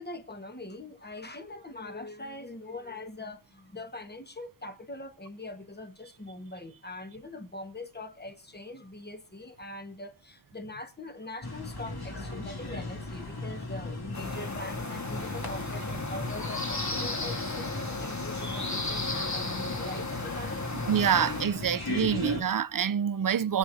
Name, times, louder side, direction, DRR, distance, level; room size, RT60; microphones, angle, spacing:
voice 1, 0.0-20.6, left 2 dB, 25° left, 1.3 m, -42 dB
sound 1, 11.4-22.4, left 2 dB, 60° left, 2.7 m, -37 dB
sound 2, 14.1-21.5, left 2 dB, 40° left, 1.6 m, -35 dB
voice 2, 20.9-23.6, right 8 dB, 50° right, 0.5 m, -26 dB
24.5 x 8.2 x 2.7 m
wide cardioid pair, 55°, 44 cm